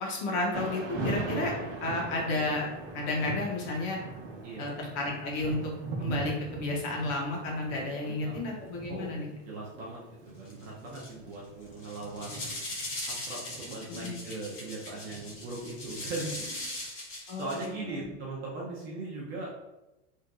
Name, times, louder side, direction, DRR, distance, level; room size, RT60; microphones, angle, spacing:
voice 1, 0.0-1.5 1.8-2.7 2.9-4.0 4.6-5.7 6.0-9.3 13.9-14.2 17.3-18.1, left 2 dB, 40° left, -1 dB, 0.7 m, -32 dB
Thunder / Rain, 0.5-16.5, right 2 dB, 60° right, 0.9 m, -40 dB
voice 2, 4.4-4.7 8.0-8.4 8.9-9.1 9.5-10.0 10.2-12.6 13.0-16.7 17.4-19.5, right 2 dB, 25° right, -4 dB, 0.4 m, -39 dB
sound 1, 10.5-10.6 10.9-11.3 11.7-17.7, left 1 dB, 80° left, 1.2 m, -39 dB
3.4 x 2.5 x 2.3 m, 0.99 s
supercardioid pair, 155°, 38 cm